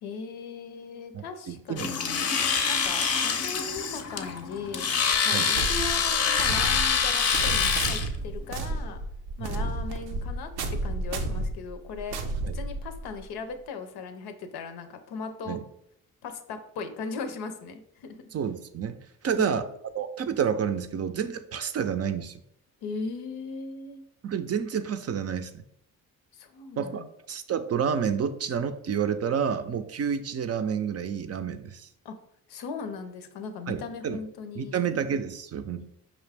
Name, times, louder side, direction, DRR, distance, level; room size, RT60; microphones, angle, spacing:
voice 1, 0.0-2.4 2.7-4.9 5.2-9.0 9.4-12.2 12.5-15.6 16.2-18.2 19.3-19.6 22.8-24.0 26.3-27.1 32.0-32.2 32.5-34.8, left 4 dB, 85° left, 8 dB, 0.6 m, -38 dB
voice 2, 1.1-1.9 5.3-5.5 9.4-9.6 12.4-12.5 15.5-15.6 18.3-19.0 19.2-19.7 20.0-22.4 24.2-25.6 26.8-31.9 33.7-34.2 34.6-35.9, right 7 dB, 40° right, 10 dB, 0.4 m, -29 dB
Domestic sounds home sounds, 1.8-8.1, left 6 dB, 45° left, 0.6 m, -26 dB
sound 1, 5.5-13.2, right 2 dB, 90° right, 0.6 m, -32 dB
5.0 x 2.4 x 3.4 m, 0.74 s
supercardioid pair, 55°, 37 cm